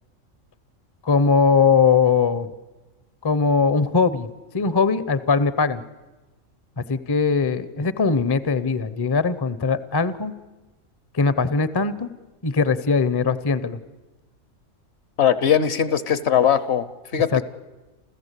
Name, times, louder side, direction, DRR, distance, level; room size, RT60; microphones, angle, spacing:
voice 1, 1.0-2.5 3.2-4.3 4.5-5.8 6.8-10.3 11.1-12.1 12.4-13.8 17.3-17.4, left 5 dB, 25° left, 14 dB, 0.6 m, -20 dB
voice 2, 15.2-17.4, left 8 dB, 60° left, 15 dB, 1.1 m, -20 dB
29.0 x 14.5 x 8.3 m, 1.2 s
omnidirectional pair, 1.4 m